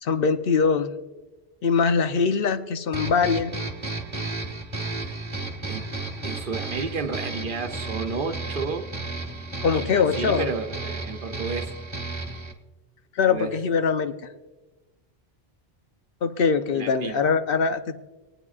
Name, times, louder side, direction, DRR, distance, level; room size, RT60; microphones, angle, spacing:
voice 1, 0.0-0.9 1.6-3.5 9.6-10.5 13.2-14.1 16.2-18.0, left 5 dB, 65° left, 9 dB, 0.9 m, -22 dB
sound 1, 2.9-12.5, right 2 dB, 30° right, 1.1 m, -33 dB
voice 2, 6.2-8.9 9.7-11.7 13.3-13.6 16.7-17.2, right 4 dB, 60° right, 5 dB, 0.9 m, -32 dB
24.0 x 9.1 x 2.4 m, 1.2 s
omnidirectional pair, 1.0 m